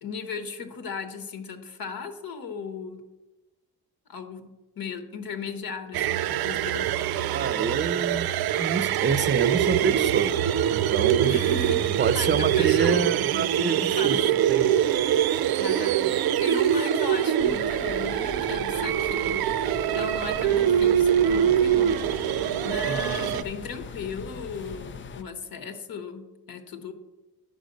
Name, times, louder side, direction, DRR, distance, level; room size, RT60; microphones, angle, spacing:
voice 1, 0.0-3.0 4.1-7.0 11.2-13.1 13.7-14.2 14.9-15.1 15.5-16.1 16.4-19.5 19.9-26.9, left 5 dB, 75° left, 8 dB, 1.1 m, -37 dB
sound 1, 5.9-23.4, right 10 dB, 80° right, 0.5 m, -24 dB
voice 2, 7.3-8.3 8.6-10.4 10.7-11.4 12.0-14.2 14.5-14.9 15.2-15.3 22.8-23.3, right 6 dB, 30° right, 14 dB, 0.5 m, -28 dB
sound 2, 17.4-25.2, left 5 dB, 35° left, 0.4 m, -41 dB
9.8 x 5.1 x 6.5 m, 1.1 s
wide cardioid pair, 145°, 36 cm